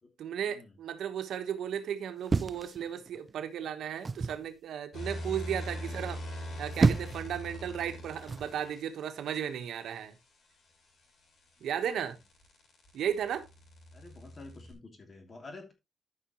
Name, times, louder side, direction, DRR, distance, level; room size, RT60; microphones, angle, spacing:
voice 1, 0.2-10.1 11.6-12.2 12.9-13.5, right 9 dB, 75° right, 1.2 m, -35 dB
sound 1, 2.3-3.3 4.1-4.5 6.4-7.3 8.3-8.6, right 4 dB, 30° right, 0.4 m, -29 dB
sound 2, 4.9-8.8 11.1-14.7, equal, 60° left, 5.0 m, -42 dB
voice 2, 11.6-12.0 13.9-15.7, left 3 dB, 30° left, 2.8 m, -50 dB
13.5 x 5.8 x 3.0 m
cardioid pair, 145°, 0 cm